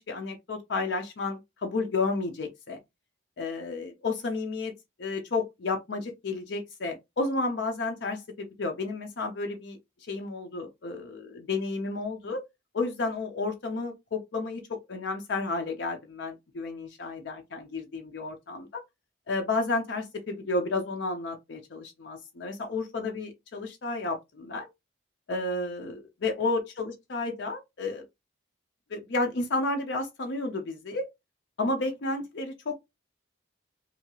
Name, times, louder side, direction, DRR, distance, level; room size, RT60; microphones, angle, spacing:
voice 1, 0.0-2.8 3.4-4.7 5.0-12.4 12.7-18.8 19.3-24.7 25.3-28.1 28.9-31.1 31.6-32.7, left 3 dB, 60° left, 0.5 m, -32 dB
2.8 x 2.3 x 2.8 m
head